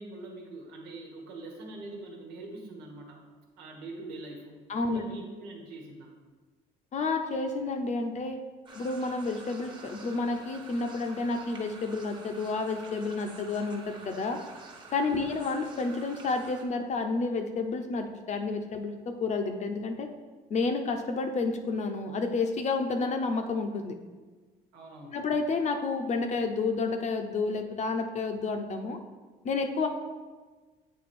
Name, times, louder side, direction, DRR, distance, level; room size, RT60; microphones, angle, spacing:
voice 1, 0.0-3.2 3.6-6.1 15.2-15.4 24.7-25.2, right 2 dB, 90° right, 0 dB, 1.4 m, -44 dB
voice 2, 4.7-5.0 6.9-8.4 8.7-14.4 14.9-20.1 20.5-24.0 25.1-29.0 29.4-29.9, left 3 dB, 45° left, 6 dB, 0.7 m, -30 dB
sound 1, 8.7-16.6, right 3 dB, 30° right, 1.2 m, -49 dB
8.4 x 3.4 x 4.3 m, 1.4 s
cardioid pair, 110°, 17 cm